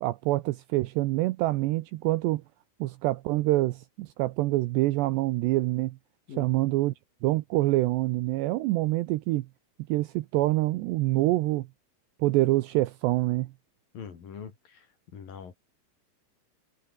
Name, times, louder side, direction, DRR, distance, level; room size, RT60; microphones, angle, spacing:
voice 1, 0.0-2.4 2.8-6.0 6.3-6.9 7.2-9.5 9.9-11.7 12.2-13.5, right 18 dB, 85° right, 2.5 m, -26 dB
voice 2, 13.9-14.9 15.1-15.5, left 7 dB, 50° left, 4.5 m, -42 dB
omnidirectional pair, 5.7 m